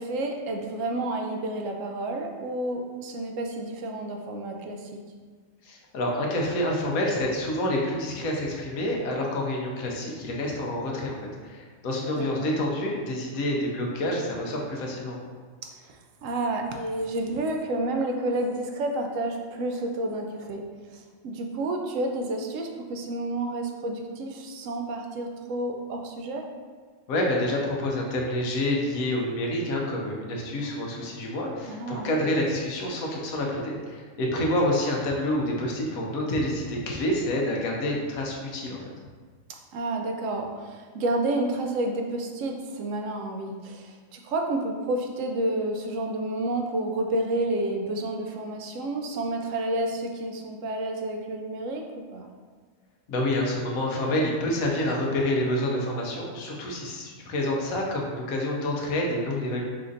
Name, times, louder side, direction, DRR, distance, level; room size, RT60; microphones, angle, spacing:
voice 1, 0.0-5.0 12.2-12.5 15.6-16.0 16.2-20.6 20.9-26.5 31.7-32.1 39.7-51.8 52.1-52.3, right 1 dB, 70° right, 3 dB, 0.9 m, -30 dB
voice 2, 5.6-11.2 11.4-15.2 27.1-38.8 53.1-59.6, left 1 dB, 85° left, -1 dB, 1.2 m, -28 dB
4.2 x 2.5 x 3.8 m, 1.5 s
omnidirectional pair, 1.4 m